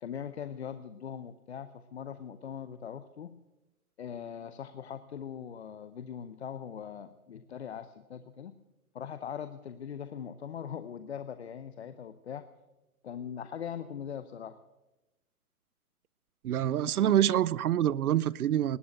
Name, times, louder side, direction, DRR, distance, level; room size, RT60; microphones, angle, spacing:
voice 1, 0.0-3.4 4.0-8.5 8.9-12.5 13.0-14.6 16.7-17.1, left 8 dB, 50° left, 0.7 m, -41 dB
voice 2, 16.4-18.8, right 11 dB, 90° right, 0.7 m, -26 dB
19.5 x 8.8 x 7.8 m
hypercardioid pair, 180°, 43 cm